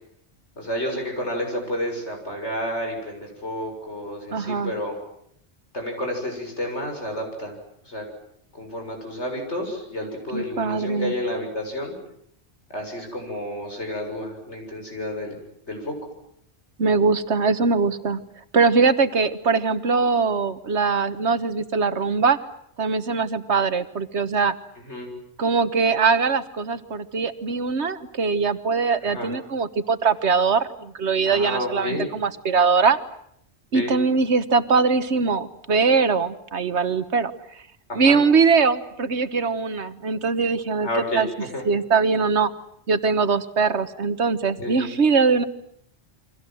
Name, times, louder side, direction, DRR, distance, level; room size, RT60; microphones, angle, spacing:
voice 1, 0.6-4.9 5.7-7.6 7.9-8.0 8.5-12.0 12.7-15.4 15.7-15.9 24.8-25.1 29.0-29.3 31.3-32.2 33.7-33.9 37.9-38.2 40.8-41.2 41.5-41.6 44.6-44.8, left 1 dB, 80° left, 3 dB, 7.4 m, -30 dB
voice 2, 4.3-4.7 10.3-11.1 16.8-18.2 18.5-22.4 22.8-24.5 25.4-33.0 33.7-37.3 37.9-40.9 41.1-41.3 41.7-42.5 42.9-45.4, right 4 dB, 75° right, 12 dB, 1.6 m, -21 dB
29.5 x 24.5 x 7.7 m, 0.71 s
omnidirectional pair, 1.1 m